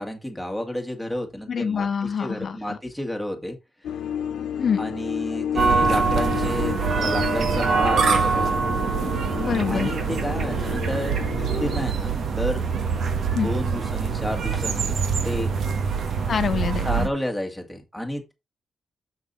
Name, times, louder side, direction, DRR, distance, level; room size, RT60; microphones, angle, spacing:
voice 1, 0.0-3.6 4.8-8.6 9.7-12.7 13.4-15.0 15.2-15.5 16.8-18.3, left 1 dB, ahead, 2.0 m, -31 dB
voice 2, 1.5-2.8 4.6-4.8 9.4-9.9 13.3-13.5 16.3-17.1, left 7 dB, 50° left, 0.7 m, -26 dB
sound 1, 3.8-11.9, left 9 dB, 85° left, 1.1 m, -31 dB
sound 2, 5.6-17.1, right 5 dB, 65° right, 1.6 m, -24 dB
6.7 x 5.9 x 4.3 m
cardioid pair, 115°, 0 cm